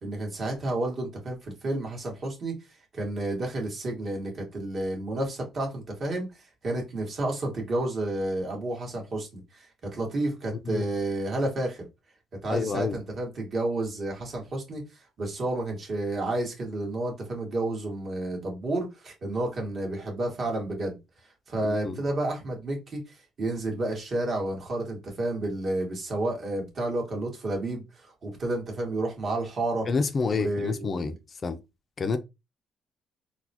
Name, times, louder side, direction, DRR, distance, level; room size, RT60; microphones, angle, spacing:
voice 1, 0.0-2.5 2.9-6.3 6.6-9.7 9.9-11.8 12.4-14.8 15.2-21.0 21.5-29.9 30.3-31.2, right 2 dB, 50° right, 1.6 m, -31 dB
voice 2, 12.5-13.0 21.6-22.0 29.9-31.1 31.4-31.6 32.0-32.2, left 4 dB, 45° left, 0.5 m, -28 dB
4.0 x 2.2 x 2.8 m
cardioid pair, 90°, 0 cm